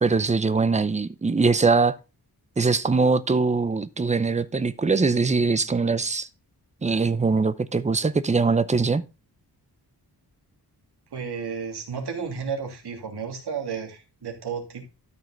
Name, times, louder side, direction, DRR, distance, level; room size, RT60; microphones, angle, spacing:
voice 1, 0.0-2.0 2.6-6.3 6.8-9.0, right 4 dB, 20° right, 0.5 m, -22 dB
voice 2, 11.1-14.8, right 6 dB, 75° right, 2.8 m, -32 dB
13.0 x 5.5 x 3.9 m
wide cardioid pair, 180°, 40 cm